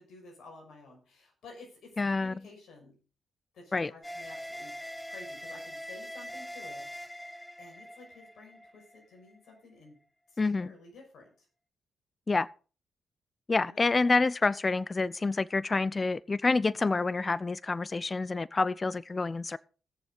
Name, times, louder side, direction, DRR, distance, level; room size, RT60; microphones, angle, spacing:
voice 1, 0.0-3.0 3.5-4.7 5.1-7.1 7.6-10.0 10.3-11.5 13.6-13.8, left 3 dB, 70° left, 6.1 m, -52 dB
voice 2, 2.0-2.4 3.7-3.9 10.4-10.7 12.3-12.5 13.5-19.6, left 3 dB, 35° left, 0.5 m, -28 dB
sound 1, 4.0-9.4, equal, 10° left, 1.2 m, -43 dB
19.0 x 7.0 x 3.9 m
hypercardioid pair, 45°, 0 cm